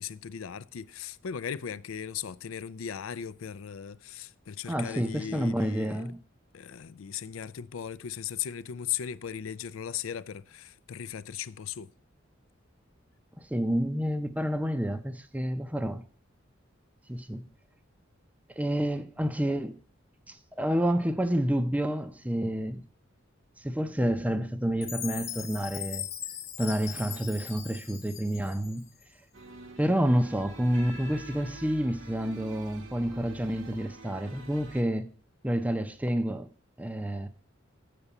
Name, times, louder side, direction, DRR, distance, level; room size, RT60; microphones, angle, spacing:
voice 1, 0.0-6.0 6.5-11.9, left 8 dB, 90° left, 0.4 m, -37 dB
voice 2, 4.7-6.2 13.4-16.0 17.1-17.5 18.6-19.8 20.3-22.8 23.6-26.1 26.6-28.8 29.8-35.1 35.4-36.5 36.8-37.3, equal, 10° right, 0.6 m, -29 dB
Chime, 24.8-29.0, left 9 dB, 30° left, 1.1 m, -40 dB
sound 1, 29.3-34.8, right 1 dB, 70° right, 1.5 m, -47 dB
7.9 x 6.8 x 7.0 m
head